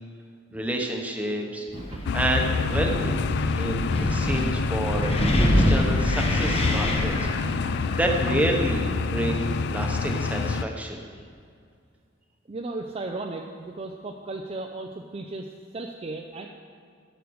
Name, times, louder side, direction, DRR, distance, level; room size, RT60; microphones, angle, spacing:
voice 1, 0.5-1.7 2.1-3.3 3.6-5.1 5.5-11.0, right 1 dB, 5° right, 1 dB, 1.0 m, -29 dB
Wind, 1.7-9.1, equal, 30° left, 1.0 m, -26 dB
sound 1, 2.0-10.6, left 4 dB, 55° left, 0.3 m, -27 dB
voice 2, 12.5-16.5, right 2 dB, 30° right, 2 dB, 0.5 m, -36 dB
13.0 x 6.7 x 4.7 m, 2.2 s
head